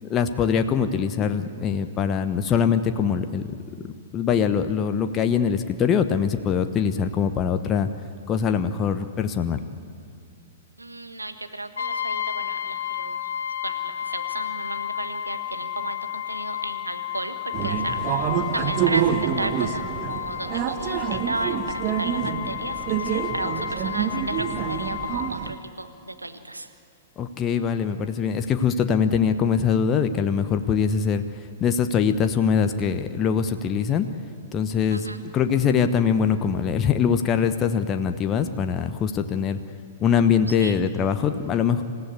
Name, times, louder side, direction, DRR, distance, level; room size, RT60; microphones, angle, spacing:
voice 1, 0.0-3.5 4.1-7.9 8.3-9.6 27.2-34.1 34.5-39.6 40.0-41.8, left 7 dB, 25° left, 8 dB, 1.0 m, -23 dB
voice 2, 10.8-13.3 13.6-17.3 17.6-26.7 34.9-35.2 40.6-40.8, right 2 dB, 85° right, 8 dB, 1.4 m, -34 dB
Brass instrument, 11.8-25.4, left 10 dB, 70° left, 2.3 m, -32 dB
sound 1, 17.5-25.5, right 9 dB, 35° right, 1.0 m, -27 dB
27.0 x 15.5 x 8.2 m, 2.3 s
figure-of-eight pair, 105°, 0 cm